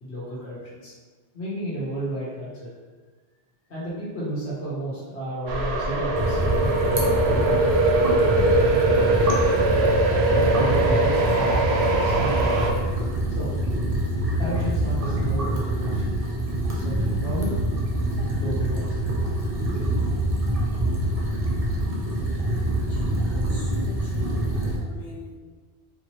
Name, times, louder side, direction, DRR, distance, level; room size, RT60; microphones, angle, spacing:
voice 1, 0.0-0.9 1.3-2.7 3.7-8.0 8.5-9.6 10.3-12.8 13.4-13.5 14.4-16.0 16.6-17.5 18.2-19.2 19.6-19.9, right 1 dB, 80° left, -9 dB, 1.4 m, -33 dB
sound 1, 5.5-12.7, right 2 dB, 80° right, 0.9 m, -21 dB
sound 2, 6.1-24.8, right 1 dB, 40° right, 0.8 m, -25 dB
voice 2, 22.8-25.3, left 2 dB, 60° left, -8 dB, 1.6 m, -44 dB
4.6 x 3.0 x 3.0 m, 1.4 s
omnidirectional pair, 1.1 m